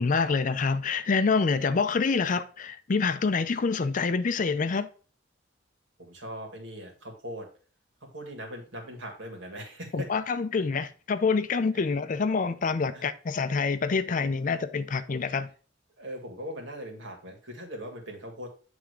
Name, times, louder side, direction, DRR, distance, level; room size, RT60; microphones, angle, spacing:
voice 1, 0.0-4.9 9.9-15.5, left 4 dB, 40° left, 0.4 m, -26 dB
voice 2, 6.0-7.5 8.0-10.1 12.9-13.1 16.0-18.5, equal, 70° right, 2.0 m, -40 dB
8.2 x 3.5 x 4.7 m
head